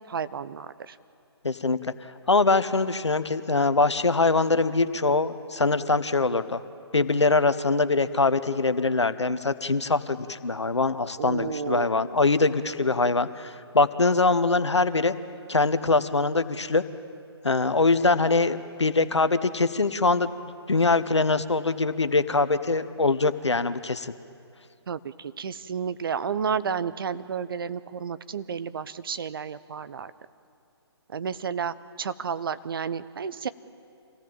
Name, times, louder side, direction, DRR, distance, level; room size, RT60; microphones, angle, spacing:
voice 1, 0.1-0.7 11.2-12.1 24.9-25.0 25.4-30.1 31.1-33.5, right 6 dB, 55° right, 14 dB, 0.8 m, -31 dB
voice 2, 1.4-1.9 2.3-6.6 6.9-15.1 15.5-16.8 17.4-20.3 20.7-24.1, left 3 dB, 80° left, 12 dB, 1.0 m, -23 dB
26.0 x 16.5 x 7.4 m, 2.5 s
figure-of-eight pair, 135°, 14 cm